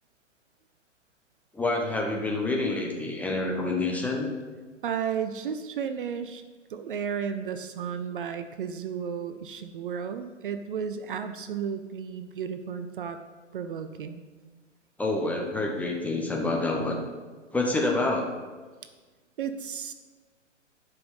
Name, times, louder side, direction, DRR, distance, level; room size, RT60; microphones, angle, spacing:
voice 1, 1.5-4.3 15.0-17.0 17.5-18.3, left 2 dB, 5° left, -1 dB, 0.7 m, -27 dB
voice 2, 4.8-6.4 6.7-13.2 13.5-14.2 19.4-19.9, right 7 dB, 45° right, 9 dB, 0.6 m, -33 dB
11.5 x 5.4 x 5.7 m, 1.4 s
figure-of-eight pair, 120°, 38 cm